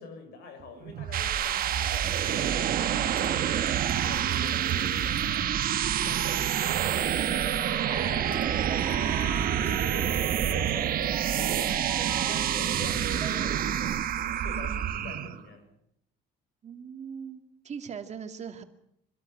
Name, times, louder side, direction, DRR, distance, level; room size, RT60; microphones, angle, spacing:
voice 1, 0.0-3.6 4.0-11.8 12.2-15.7, left 4 dB, 75° left, 6 dB, 7.0 m, -45 dB
sound 1, 0.8-15.4, right 10 dB, 60° right, 1.5 m, -27 dB
sound 2, 3.2-14.2, right 1 dB, 10° right, 3.7 m, -52 dB
sound 3, 7.9-13.6, right 5 dB, 25° right, 3.1 m, -40 dB
voice 2, 16.6-18.6, right 7 dB, 40° right, 7 dB, 2.4 m, -40 dB
25.0 x 13.0 x 9.2 m, 0.77 s
cardioid pair, 110°, 17 cm